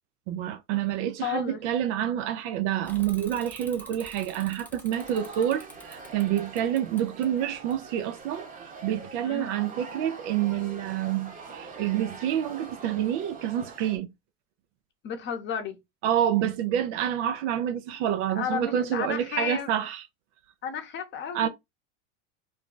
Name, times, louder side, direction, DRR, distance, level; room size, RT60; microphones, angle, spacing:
voice 1, 0.3-8.5 8.8-14.1 16.0-20.0 21.3-21.5, right 11 dB, 65° right, 0.5 m, -28 dB
voice 2, 1.2-1.6 9.2-9.5 15.0-15.8 18.3-19.7 20.6-21.5, left 7 dB, 30° left, 0.8 m, -32 dB
Bicycle / Mechanisms, 2.8-8.3, left 1 dB, 5° left, 0.5 m, -49 dB
sound 1, 4.9-14.0, right 4 dB, 20° right, 0.8 m, -44 dB
2.6 x 2.3 x 3.7 m
supercardioid pair, 120°, 38 cm